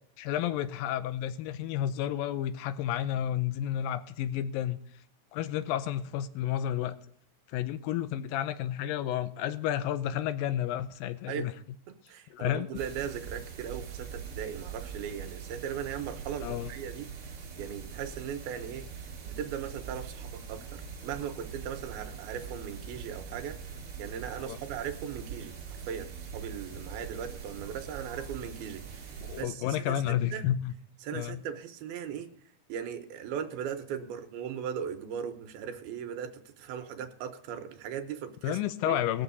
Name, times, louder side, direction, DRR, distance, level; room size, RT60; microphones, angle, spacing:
voice 1, 0.2-4.8 5.3-7.0 7.5-11.5 12.3-12.7 16.4-16.7 24.5-24.6 29.2-30.7 31.1-31.4 38.4-39.2, left 11 dB, 80° left, 12 dB, 2.2 m, -31 dB
voice 2, 11.9-18.9 19.2-23.6 24.0-25.5 25.9-30.4 31.0-32.3 32.7-38.6 38.9-39.0, right 8 dB, 80° right, 5 dB, 2.9 m, -38 dB
sound 1, 12.7-29.4, right 6 dB, 45° right, 2.3 m, -42 dB
21.0 x 7.1 x 4.1 m, 0.64 s
omnidirectional pair, 4.4 m